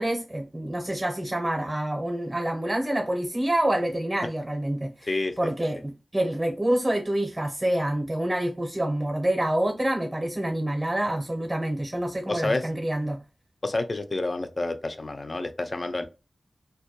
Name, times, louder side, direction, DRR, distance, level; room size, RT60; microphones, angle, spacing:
voice 1, 0.0-5.1 5.4-13.2, right 1 dB, 20° right, 0.6 m, -27 dB
voice 2, 12.3-12.7 13.6-16.1, left 2 dB, 40° left, 0.3 m, -28 dB
2.2 x 2.1 x 2.7 m
wide cardioid pair, 75°, 0 cm